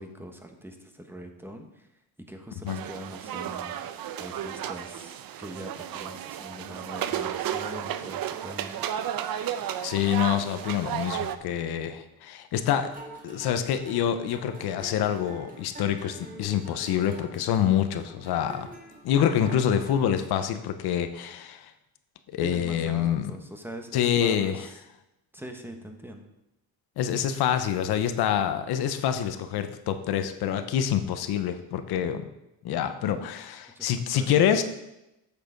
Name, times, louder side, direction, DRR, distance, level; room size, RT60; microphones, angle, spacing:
voice 1, 0.0-1.9 2.3-8.8 22.4-24.8 25.3-26.2 33.7-34.3, equal, 5° right, 4 dB, 1.3 m, -42 dB
sound 1, 2.7-11.4, right 10 dB, 65° right, 0.7 m, -33 dB
voice 2, 9.8-12.9 13.2-18.7 19.0-21.7 22.3-23.3 23.9-24.7 27.0-32.2 32.6-34.6, left 9 dB, 85° left, 9 dB, 0.8 m, -26 dB
sound 2, 12.6-20.3, right 2 dB, 20° right, 2.4 m, -47 dB
8.0 x 6.8 x 5.2 m, 0.90 s
cardioid pair, 95°, 37 cm